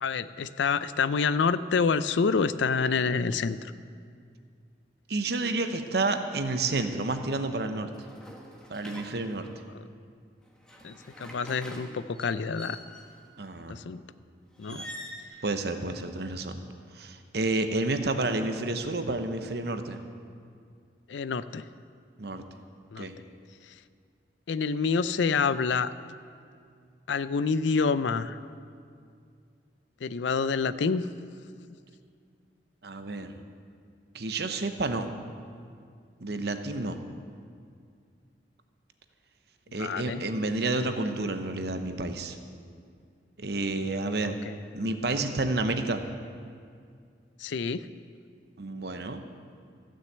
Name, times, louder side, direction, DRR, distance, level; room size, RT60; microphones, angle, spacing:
voice 1, 0.0-3.7 10.8-12.8 13.7-14.0 14.6-14.8 21.1-21.6 22.9-23.1 24.5-25.9 27.1-28.4 30.0-31.0 39.7-40.2 44.2-44.6 47.4-47.8, left 5 dB, 80° left, 15 dB, 0.4 m, -27 dB
voice 2, 5.1-7.9 8.7-9.5 13.4-13.8 14.7-14.9 15.4-16.6 16.9-20.0 22.2-22.5 23.0-23.2 32.8-33.4 34.1-35.1 36.2-37.0 39.7-42.4 43.4-44.4 44.7-46.0 48.6-49.2, right 2 dB, 60° right, 8 dB, 0.8 m, -30 dB
sound 1, 7.9-9.6 10.5-13.3 14.6-15.2, equal, 5° left, 1.1 m, -46 dB
15.0 x 6.4 x 8.0 m, 2.3 s
head